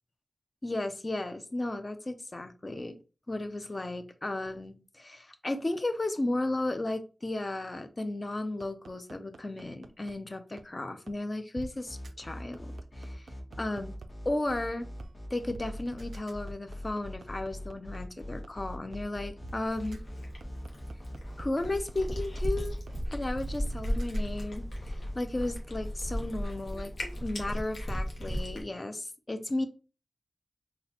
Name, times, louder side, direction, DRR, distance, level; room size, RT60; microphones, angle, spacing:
voice 1, 0.6-3.0 3.3-13.2 13.6-13.9 14.2-14.9 15.3-20.0 21.4-22.7 23.1-26.9 27.2-29.7, left 2 dB, 35° left, 8 dB, 0.5 m, -34 dB
sound 1, 8.6-10.1 10.6-10.7 11.1-11.2 11.6-11.7 12.0-12.1 12.5-14.1 14.5-14.6 15.0-15.1 15.5-18.0 18.4-18.5 18.9-19.0 19.4-19.6 19.9-20.0 20.4-21.9 22.4-22.5 22.9-23.0 23.4-24.2, right 3 dB, 85° right, 0.3 m, -45 dB
sound 2, 11.9-26.8, left 1 dB, 50° left, 1.2 m, -42 dB
Cat, 19.6-28.6, equal, 85° left, 1.0 m, -36 dB
3.9 x 2.3 x 2.9 m, 0.34 s
wide cardioid pair, 60°, 0 cm